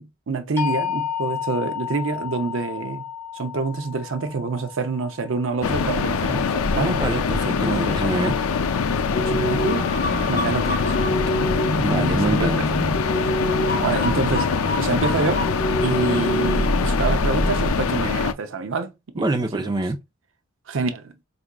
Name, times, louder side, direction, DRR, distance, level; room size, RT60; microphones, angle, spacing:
voice 1, 0.0-3.1 3.3-7.0 9.0-9.9 10.3-10.9 11.9-12.7 13.8-14.5 14.8-15.4 15.8-19.3 19.5-19.7 20.7-21.1, right 4 dB, 60° right, 0.5 m, -27 dB
sound 1, 0.6-6.5, left 9 dB, 10° left, 1.3 m, -32 dB
sound 2, 5.6-18.3, left 5 dB, 90° left, 0.5 m, -24 dB
voice 2, 6.8-8.3 11.8-12.6 19.2-20.0, right 2 dB, 20° right, 0.6 m, -25 dB
sound 3, 9.1-17.7, equal, 40° left, 0.7 m, -26 dB
4.6 x 2.6 x 2.2 m
head